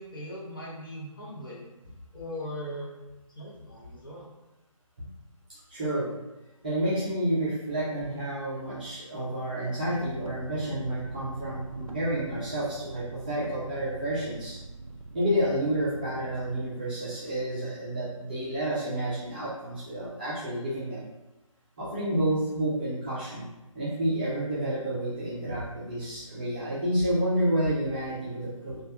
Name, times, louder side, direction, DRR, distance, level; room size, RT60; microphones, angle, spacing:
voice 1, 0.0-1.7 2.1-3.0 3.3-4.3, equal, 40° left, -6 dB, 0.9 m, -39 dB
voice 2, 5.5-6.1 6.6-14.6 15.1-21.0 21.8-23.4 23.7-28.8, right 1 dB, 15° right, -11 dB, 0.6 m, -30 dB
sound 1, 9.9-16.7, right 2 dB, 90° right, 0.5 m, -42 dB
3.2 x 2.3 x 2.7 m, 1.0 s
figure-of-eight pair, 150°, 17 cm